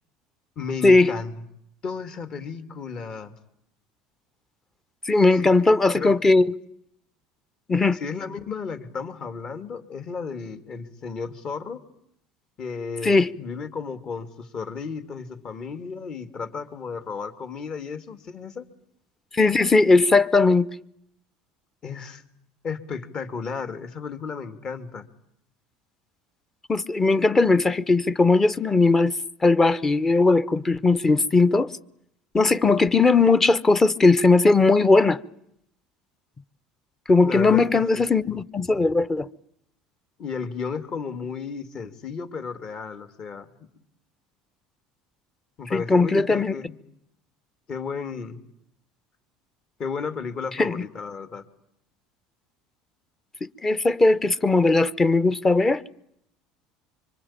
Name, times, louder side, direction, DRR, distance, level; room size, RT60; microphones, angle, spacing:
voice 1, 0.6-1.4 1.8-3.3 5.3-5.5 5.9-6.1 7.9-11.8 12.6-18.7 21.8-22.2 22.6-25.1 37.2-38.0 40.2-43.5 45.6-46.7 47.7-48.4 49.8-51.4, left 5 dB, 40° left, 2.7 m, -33 dB
voice 2, 5.1-6.5 7.7-8.0 13.0-13.3 19.3-20.7 26.7-29.1 29.4-31.7 32.3-35.2 37.1-39.3 45.7-46.5 50.6-50.8 53.6-55.8, left 3 dB, 20° left, 1.0 m, -18 dB
25.5 x 24.5 x 8.9 m
supercardioid pair, 105°, 2 cm